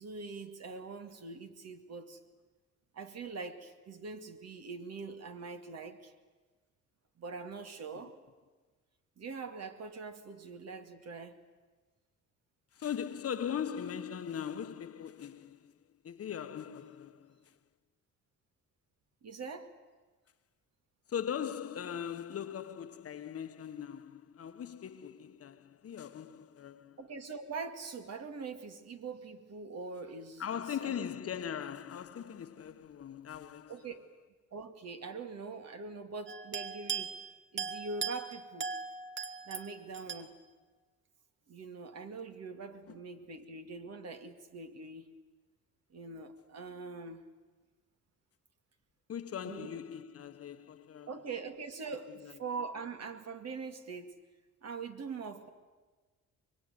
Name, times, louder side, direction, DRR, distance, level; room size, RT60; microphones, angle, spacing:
voice 1, 0.0-2.2 2.9-6.1 7.2-8.2 9.2-11.4 19.2-19.7 27.0-31.0 33.7-34.1 34.5-37.2 37.5-38.7 39.5-40.3 41.5-45.1 45.9-47.2 49.4-49.8 51.1-54.2 54.6-55.5, right 4 dB, 55° right, 2.4 m, -43 dB
voice 2, 12.7-15.7 16.0-17.6 21.1-27.0 30.4-33.9 49.1-51.3 52.1-52.4, left 8 dB, 50° left, 1.2 m, -40 dB
sound 1, 36.3-37.2 37.6-40.2, right 6 dB, 40° right, 1.9 m, -39 dB
24.5 x 22.0 x 9.5 m
cardioid pair, 90°, 30 cm